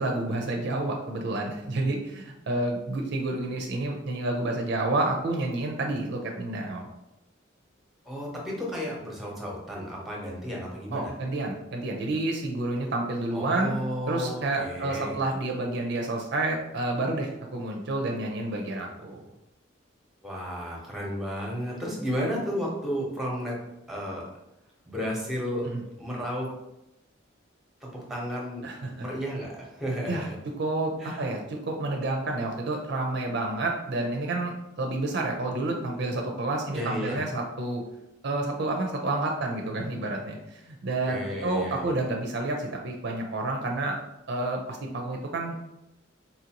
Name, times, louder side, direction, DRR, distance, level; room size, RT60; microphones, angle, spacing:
voice 1, 0.0-6.9 10.9-13.7 14.1-19.2 25.6-25.8 28.6-29.0 30.1-30.3 30.6-37.8 38.2-44.0 44.3-45.5, right 2 dB, 55° right, 1 dB, 0.4 m, -29 dB
voice 2, 8.0-11.1 13.3-15.2 20.2-23.5 23.9-24.2 24.9-25.7 26.0-26.5 27.8-28.7 29.0-30.4 31.0-31.2 36.7-37.2 41.1-41.9, equal, ahead, -4 dB, 0.8 m, -33 dB
4.1 x 2.6 x 2.8 m, 0.90 s
head